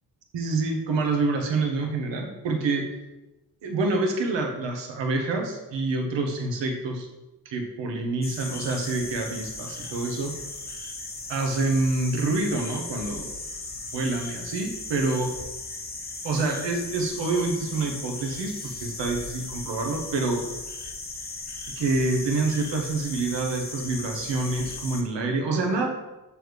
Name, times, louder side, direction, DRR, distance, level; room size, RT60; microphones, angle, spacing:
voice 1, 0.3-2.9 3.6-7.1 7.4-10.3 11.3-13.4 13.9-15.3 16.2-18.5 18.8-20.4 21.8-25.9, right 3 dB, 80° right, 3 dB, 1.1 m, -27 dB
sound 1, 8.2-25.0, left 3 dB, 20° left, 0.9 m, -37 dB
6.4 x 3.3 x 4.8 m, 1.0 s
cardioid pair, 60°, 43 cm